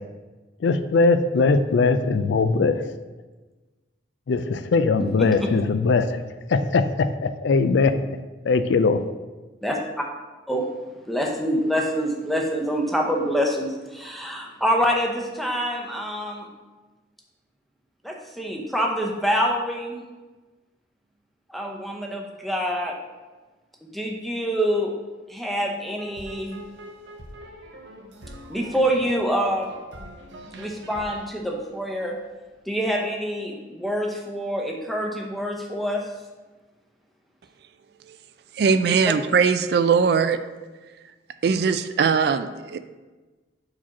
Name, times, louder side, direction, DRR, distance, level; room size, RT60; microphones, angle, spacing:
voice 1, 0.6-2.8 4.3-6.2 6.5-7.9 8.4-9.0, left 4 dB, 75° left, 11 dB, 0.4 m, -20 dB
voice 2, 9.6-10.0 10.5-10.7 11.1-16.5 18.0-20.0 21.5-22.9 23.9-24.9 25.3-26.6 28.5-29.7 30.6-32.2 32.7-36.0, equal, ahead, 0 dB, 0.7 m, -26 dB
sound 1, 26.0-32.3, right 1 dB, 75° right, 0.8 m, -43 dB
voice 3, 38.5-40.4 41.4-42.8, right 5 dB, 60° right, 11 dB, 0.3 m, -20 dB
4.8 x 4.3 x 5.9 m, 1.2 s
head